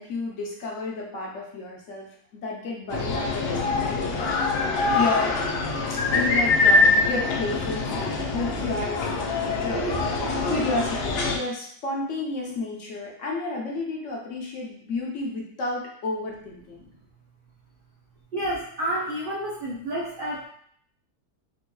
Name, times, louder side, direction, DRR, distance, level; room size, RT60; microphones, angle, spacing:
voice 1, 0.0-5.4 5.9-9.9 10.4-16.9, left 3 dB, 60° left, -2 dB, 1.0 m, -32 dB
sound 1, 2.9-11.4, left 3 dB, 85° left, 0.5 m, -24 dB
voice 2, 18.3-20.5, right 1 dB, 85° right, -6 dB, 0.4 m, -29 dB
3.8 x 2.6 x 2.3 m, 0.63 s
omnidirectional pair, 1.6 m